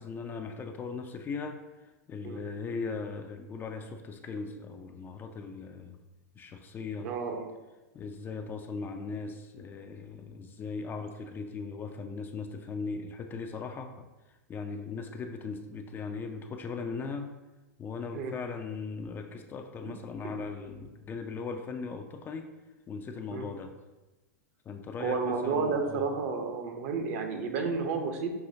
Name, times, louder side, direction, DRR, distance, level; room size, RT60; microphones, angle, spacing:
voice 1, 0.0-1.6 2.1-6.0 6.4-7.1 7.9-13.9 14.5-17.3 17.8-22.5 22.9-23.7 24.7-26.0, left 4 dB, 20° left, 6 dB, 0.3 m, -38 dB
voice 2, 7.0-7.5 18.1-18.3 19.8-19.9 23.3-23.5 25.0-28.3, right 5 dB, 55° right, 5 dB, 0.7 m, -31 dB
5.7 x 2.7 x 2.7 m, 1.1 s
figure-of-eight pair, 95°, 9 cm